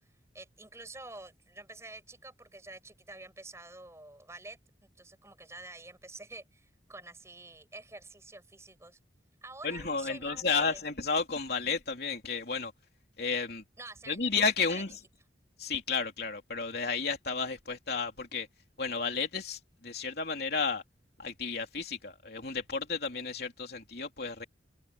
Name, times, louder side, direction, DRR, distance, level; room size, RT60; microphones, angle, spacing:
voice 1, 0.3-4.6 5.0-9.0 9.4-10.8 13.8-14.3 14.7-14.8, right 2 dB, 15° right, 7.3 m, -48 dB
voice 2, 9.6-12.7 13.2-13.6 14.1-15.0 15.6-18.5 18.8-20.8 21.2-24.4, left 5 dB, 55° left, 3.6 m, -32 dB
head